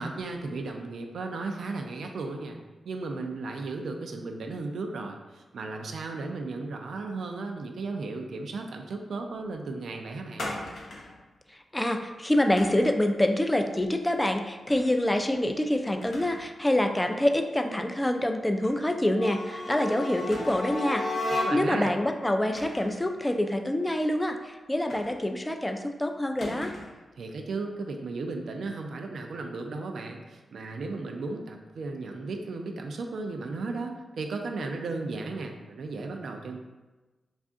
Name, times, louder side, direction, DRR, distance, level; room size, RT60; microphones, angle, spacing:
voice 1, 0.0-2.6 2.9-10.5 21.4-21.9 27.2-36.6, right 3 dB, 75° right, 3 dB, 0.3 m, -35 dB
sound 1, 10.4-11.2 12.6-13.0 14.7-15.0 15.4-15.5 16.0-16.5 16.9-17.0 18.6-18.8 19.1-19.2 20.3-20.9 22.5-23.0 24.9-25.5 26.4-27.0, left 1 dB, 70° left, 0.6 m, -40 dB
voice 2, 11.7-26.7, left 1 dB, 15° left, 5 dB, 0.3 m, -26 dB
sound 2, 19.1-21.9, left 2 dB, 35° left, 0.9 m, -32 dB
2.4 x 2.4 x 3.6 m, 1.2 s
cardioid pair, 55°, 0 cm